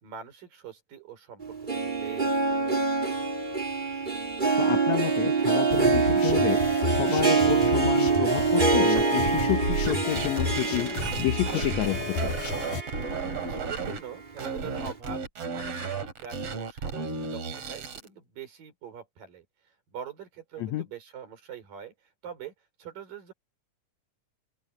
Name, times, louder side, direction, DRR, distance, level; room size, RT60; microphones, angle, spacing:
voice 1, 0.0-3.0 13.5-19.4 19.9-21.9 22.2-22.5 22.8-23.3, right 8 dB, 75° right, 6.3 m, -43 dB
Harp, 1.4-13.6 13.9-14.0 14.9-15.0, right 4 dB, 15° right, 1.8 m, -25 dB
voice 2, 4.6-6.6 6.9-10.9 11.2-12.3 20.6-20.9, left 15 dB, 80° left, 1.5 m, -30 dB
sound 1, 5.7-12.8, left 4 dB, 65° left, 4.3 m, -32 dB
sound 2, 9.0-11.9 12.2-14.0 14.4-18.1, right 5 dB, 45° right, 3.4 m, -34 dB
open air
omnidirectional pair, 4.0 m